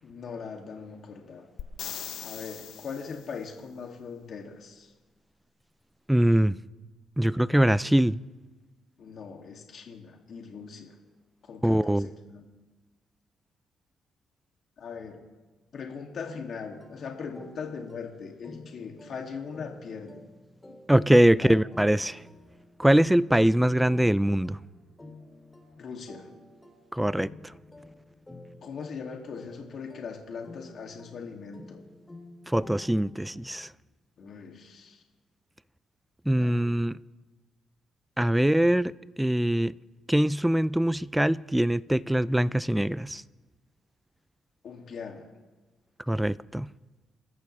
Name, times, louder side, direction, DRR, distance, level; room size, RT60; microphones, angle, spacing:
voice 1, 0.0-1.5 2.2-4.9 9.0-10.9 11.5-12.5 14.8-15.2 15.7-20.2 21.3-21.6 25.8-26.3 28.6-31.9 34.2-35.0 36.4-36.6 44.6-45.3, left 5 dB, 60° left, 2.4 m, -40 dB
sound 1, 1.6-3.4 7.3-7.4, left 10 dB, 80° left, 0.8 m, -40 dB
voice 2, 6.1-6.6 7.2-8.2 11.6-12.1 20.9-22.2 22.8-24.6 26.9-27.3 32.5-33.7 36.3-37.0 38.2-38.9 39.2-39.7 40.1-43.2 46.1-46.7, right 1 dB, 5° right, 0.4 m, -23 dB
sound 2, 16.3-33.7, left 2 dB, 15° left, 2.6 m, -50 dB
29.5 x 13.5 x 3.3 m
cardioid pair, 90°, 0 cm